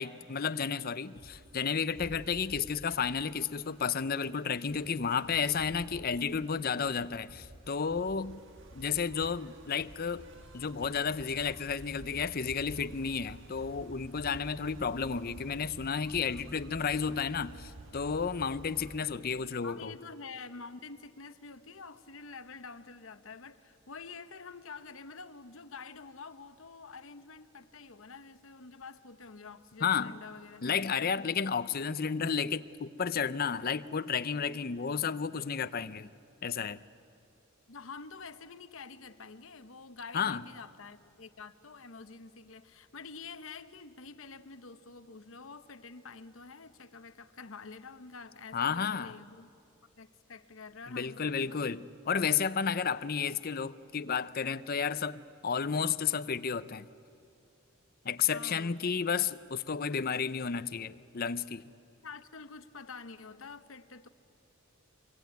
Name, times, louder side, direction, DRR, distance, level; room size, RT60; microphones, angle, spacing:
voice 1, 0.0-8.4 8.7-10.2 10.5-19.9 29.8-30.1 30.6-36.1 36.4-36.8 40.1-40.4 48.5-49.1 50.9-56.9 58.0-61.6, left 6 dB, 45° left, 0.6 m, -32 dB
sound 1, 1.2-19.0, right 1 dB, 60° right, 1.5 m, -51 dB
voice 2, 19.3-31.4 37.7-49.5 50.0-51.8 58.3-58.8 62.0-64.1, left 4 dB, 70° left, 1.0 m, -48 dB
24.0 x 23.5 x 9.3 m
head